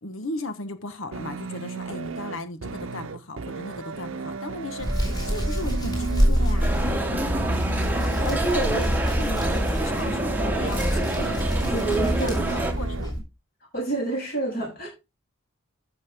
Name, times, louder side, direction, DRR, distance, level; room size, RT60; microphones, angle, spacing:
voice 1, 0.0-6.8 8.7-8.8 9.2-9.3 9.8-11.8 12.2-13.2, left 2 dB, 80° left, 1.1 m, -36 dB
sound 1, 1.1-13.1, right 4 dB, 80° right, 0.7 m, -35 dB
Hands, 4.8-13.2, equal, 20° left, 4.4 m, -26 dB
sound 2, 6.6-12.7, right 1 dB, 10° right, 1.1 m, -28 dB
voice 2, 8.2-8.8 9.2-9.6 11.7-12.7 13.7-14.9, right 2 dB, 45° left, 7.7 m, -28 dB
14.0 x 6.4 x 3.5 m
head